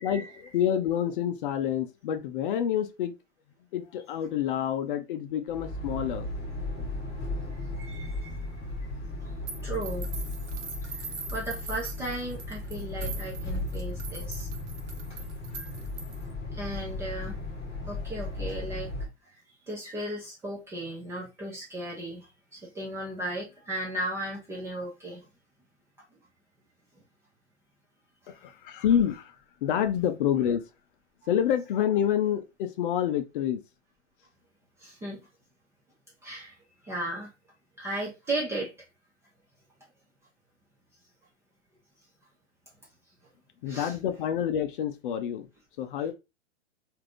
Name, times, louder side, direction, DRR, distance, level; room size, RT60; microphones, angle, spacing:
voice 1, 0.0-3.1 3.7-6.3 28.3-29.4 29.6-30.6 31.3-33.6 43.6-45.5 45.8-46.1, left 9 dB, 50° left, 0.5 m, -28 dB
sound 1, 5.5-19.1, left 2 dB, 15° left, 1.2 m, -36 dB
voice 2, 7.8-10.2 10.8-14.5 15.5-15.6 16.5-17.4 17.9-18.9 19.7-25.3 34.8-35.3 36.2-36.6 36.8-37.3 37.8-38.8 43.7-43.9, right 1 dB, 10° right, 0.4 m, -36 dB
sound 2, 9.5-16.3, right 5 dB, 70° right, 1.0 m, -42 dB
3.3 x 2.6 x 2.4 m
hypercardioid pair, 130°, 35 cm